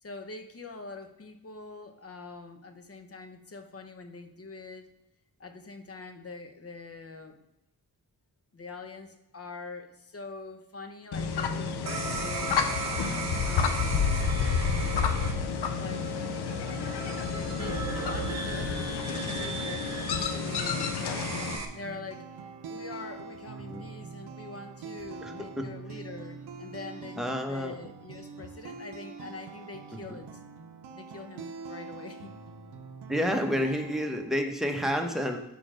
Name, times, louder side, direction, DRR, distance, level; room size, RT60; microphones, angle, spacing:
voice 1, 0.0-4.9 5.4-7.4 8.5-12.5 13.4-14.1 15.8-16.1 17.2-19.9 20.2-21.4 21.7-30.4 31.0-32.3 33.6-33.9, left 3 dB, 40° left, 8 dB, 0.9 m, -44 dB
sound 1, 11.1-21.6, left 6 dB, 80° left, 0.7 m, -30 dB
sound 2, 11.9-21.7, right 4 dB, 45° right, 0.9 m, -37 dB
sound 3, 17.5-34.4, right 5 dB, 85° right, 0.6 m, -44 dB
voice 2, 25.2-25.7 27.2-27.7 30.1-30.2 33.1-35.4, equal, ahead, 3 dB, 1.0 m, -29 dB
5.1 x 4.3 x 5.0 m, 0.92 s
cardioid pair, 55°, 39 cm